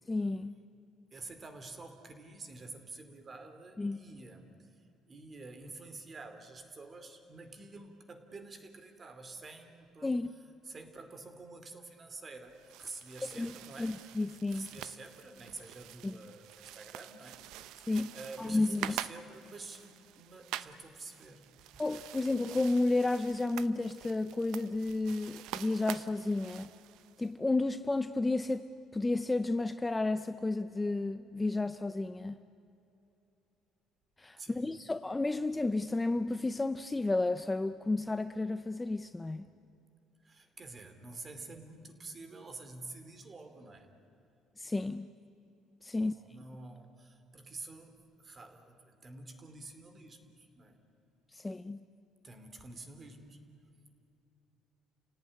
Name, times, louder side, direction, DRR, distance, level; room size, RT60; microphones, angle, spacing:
voice 1, 0.1-0.5 3.8-4.0 10.0-10.3 13.4-14.7 16.0-16.1 17.9-19.0 21.8-26.7 27.2-32.4 34.2-39.5 44.6-45.1 45.8-46.1 51.3-51.8, left 2 dB, 10° left, 0.5 m, -32 dB
voice 2, 1.1-10.2 10.6-13.9 14.5-17.4 18.1-19.9 20.2-21.5 34.4-34.8 40.2-43.9 45.9-50.8 52.2-53.4, right 3 dB, 25° right, 2.6 m, -48 dB
sound 1, 12.5-27.3, right 13 dB, 75° right, 0.7 m, -46 dB
30.0 x 17.5 x 9.9 m
cardioid pair, 145°, 0 cm